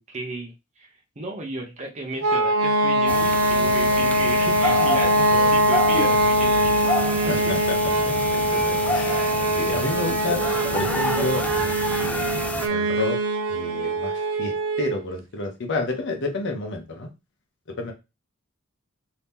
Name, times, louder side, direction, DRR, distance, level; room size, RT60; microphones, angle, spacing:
voice 1, 0.0-7.6, right 2 dB, 35° right, 2 dB, 0.7 m, -34 dB
sound 1, 2.2-15.0, right 1 dB, 80° right, 0.4 m, -22 dB
sound 2, 3.1-12.7, left 1 dB, 5° left, 0.3 m, -29 dB
voice 2, 7.2-7.6 8.0-11.8 12.0-13.2 13.5-17.1 17.8-17.9, left 2 dB, 60° left, 2 dB, 0.8 m, -30 dB
2.8 x 2.8 x 3.5 m, 0.25 s
head